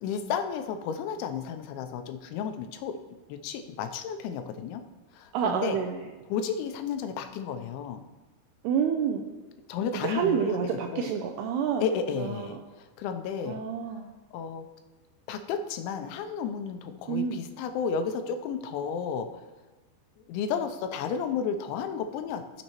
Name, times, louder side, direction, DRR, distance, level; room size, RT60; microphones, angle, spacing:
voice 1, 0.0-3.0 3.3-4.8 5.1-5.8 6.3-8.1 9.7-10.6 10.9-11.1 11.8-13.6 14.3-14.7 15.3-19.4 20.3-22.6, left 6 dB, 85° left, 7 dB, 3.1 m, -32 dB
voice 2, 5.3-6.0 8.6-9.2 10.0-11.8 12.2-12.5 13.5-14.1 17.1-17.4, right 7 dB, 85° right, 4 dB, 2.3 m, -28 dB
17.5 x 6.5 x 3.0 m, 1.2 s
omnidirectional pair, 5.2 m